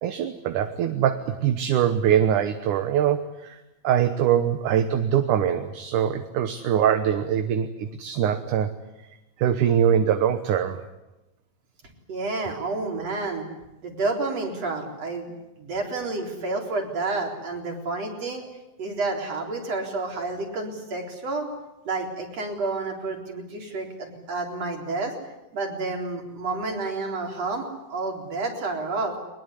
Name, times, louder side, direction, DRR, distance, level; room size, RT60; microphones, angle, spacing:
voice 1, 0.0-3.6 3.8-8.7 9.4-10.8, right 9 dB, 70° right, 8 dB, 2.5 m, -23 dB
voice 2, 12.1-13.5 13.8-15.3 15.6-18.5 18.8-21.5 21.8-25.2 25.5-29.2, right 3 dB, 45° right, 2 dB, 4.9 m, -30 dB
22.0 x 21.5 x 9.8 m, 0.98 s
omnidirectional pair, 4.0 m